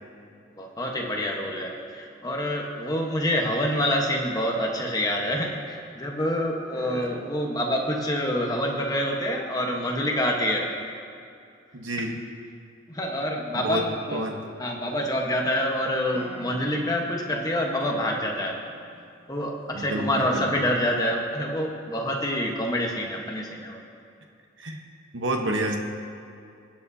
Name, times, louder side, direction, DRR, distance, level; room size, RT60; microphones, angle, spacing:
voice 1, 0.6-10.7 12.9-14.3 14.6-18.6 19.3-23.8, equal, 20° left, 0 dB, 1.1 m, -27 dB
voice 2, 6.7-7.2 11.7-12.2 13.5-13.8 14.1-14.4 19.7-20.5 24.6-24.8 25.1-25.8, right 1 dB, 65° right, 3 dB, 1.0 m, -29 dB
sound 1, 14.6-15.5 16.1-19.8, right 2 dB, 30° right, 0.9 m, -45 dB
19.5 x 8.6 x 2.7 m, 2.5 s
head